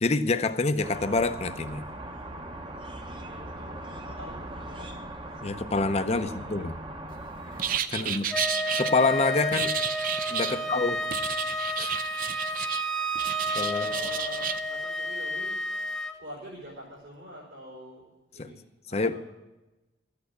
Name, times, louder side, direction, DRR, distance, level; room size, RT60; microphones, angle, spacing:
voice 1, 0.0-1.8 5.4-6.7 7.9-8.3 8.8-9.7 10.3-11.0 11.8-11.9 13.5-13.9 18.4-18.5 18.9-19.2, left 3 dB, 35° left, 10 dB, 0.7 m, -26 dB
sound 1, 0.8-7.8, right 1 dB, 25° right, 1.0 m, -40 dB
voice 2, 3.2-4.9 6.1-6.5 7.9-8.2 10.4-11.2 13.0-13.1 13.5-15.6 16.2-19.2, equal, 75° right, -6 dB, 4.6 m, -45 dB
sound 2, 7.6-8.9 9.5-10.6 11.1-12.8 13.1-14.6, right 8 dB, 45° right, 0.6 m, -31 dB
Wind instrument woodwind instrument, 8.3-16.2, equal, 5° left, 0.8 m, -31 dB
13.5 x 8.7 x 8.2 m, 1.0 s
head